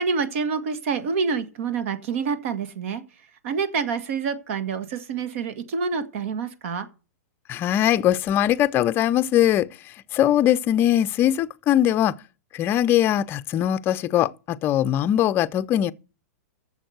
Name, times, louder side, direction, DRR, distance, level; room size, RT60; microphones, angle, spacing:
voice 1, 0.0-3.0 3.4-6.9, right 5 dB, 60° right, 1.7 m, -27 dB
voice 2, 7.5-9.7 10.1-12.1 12.5-15.9, left 11 dB, 25° left, 0.5 m, -21 dB
11.0 x 7.3 x 7.9 m
hypercardioid pair, 135°, 8 cm